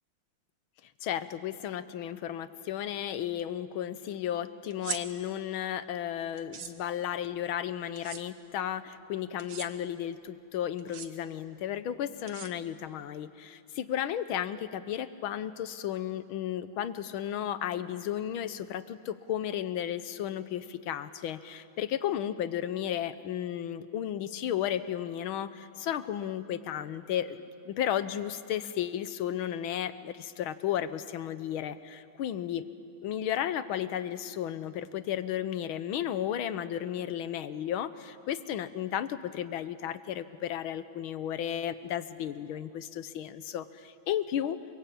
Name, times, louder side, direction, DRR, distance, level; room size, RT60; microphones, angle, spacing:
voice 1, 1.0-27.4 27.6-32.7 33.0-44.6, left 10 dB, 75° left, 13 dB, 1.7 m, -34 dB
sound 1, 4.7-5.0 6.4-6.7 8.0-8.2 9.4-9.7 10.8-11.1 12.3-12.9, right 7 dB, 60° right, 1.9 m, -39 dB
28.0 x 23.5 x 8.5 m, 2.5 s
omnidirectional pair, 2.3 m